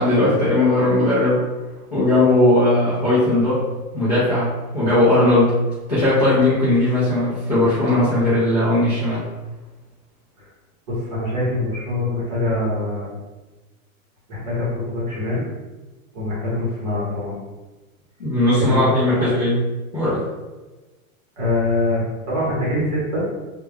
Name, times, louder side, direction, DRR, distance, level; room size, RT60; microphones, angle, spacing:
voice 1, 0.0-1.4 1.9-3.6 3.9-5.6 5.9-9.2 18.2-19.6 19.9-20.3, left 1 dB, 30° left, -11 dB, 0.4 m, -18 dB
voice 2, 10.9-13.2 14.3-15.4 16.1-17.4 18.6-18.8 19.1-19.3 21.4-23.3, left 2 dB, 30° right, -7 dB, 0.8 m, -24 dB
2.1 x 2.1 x 3.2 m, 1.2 s
supercardioid pair, 180°, 42 cm